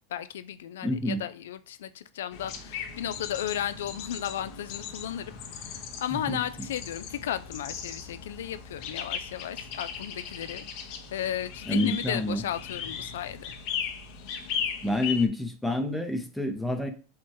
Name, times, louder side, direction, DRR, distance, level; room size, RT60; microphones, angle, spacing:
voice 1, 0.1-13.5, left 11 dB, 90° left, 0.3 m, -35 dB
voice 2, 0.8-1.2 6.1-6.4 11.7-12.4 14.8-16.9, left 1 dB, ahead, 0.6 m, -28 dB
sound 1, 2.3-15.3, left 7 dB, 55° left, 0.8 m, -38 dB
4.4 x 2.1 x 4.5 m
supercardioid pair, 135°, 0 cm